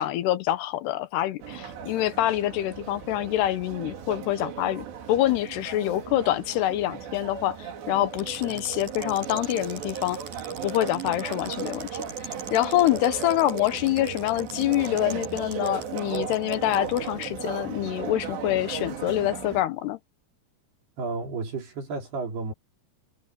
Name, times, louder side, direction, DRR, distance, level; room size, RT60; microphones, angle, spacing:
voice 1, 0.0-10.2 10.6-20.0, left 14 dB, 80° left, 3.1 m, -26 dB
sound 1, 1.4-19.6, right 7 dB, 85° right, 5.1 m, -36 dB
sound 2, 8.2-17.2, right 3 dB, 55° right, 9.1 m, -42 dB
voice 2, 21.0-22.5, right 4 dB, 70° right, 6.1 m, -32 dB
omnidirectional pair, 4.8 m